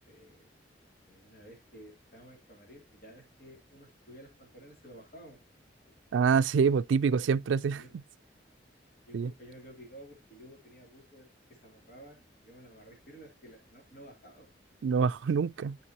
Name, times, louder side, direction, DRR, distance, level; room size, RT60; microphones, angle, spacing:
voice 1, 0.1-0.5 1.1-5.4 7.0-7.3 7.7-7.9 9.1-14.5, right 1 dB, 50° left, 3.0 m, -53 dB
voice 2, 6.1-7.8 9.1-9.3 14.8-15.8, right 6 dB, 90° right, 0.4 m, -26 dB
11.5 x 5.3 x 2.9 m
head